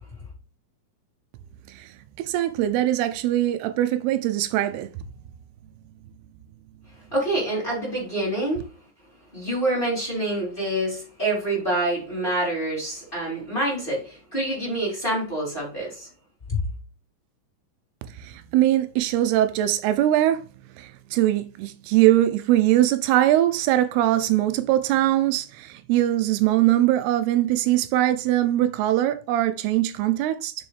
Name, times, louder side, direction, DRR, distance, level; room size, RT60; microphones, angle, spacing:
voice 1, 1.7-4.9 18.2-20.4 20.8-30.5, right 13 dB, 85° right, 2.6 m, -22 dB
voice 2, 7.1-8.7 9.3-16.1 16.5-16.6, right 1 dB, 15° left, 3.7 m, -26 dB
7.0 x 6.3 x 3.2 m
omnidirectional pair, 4.5 m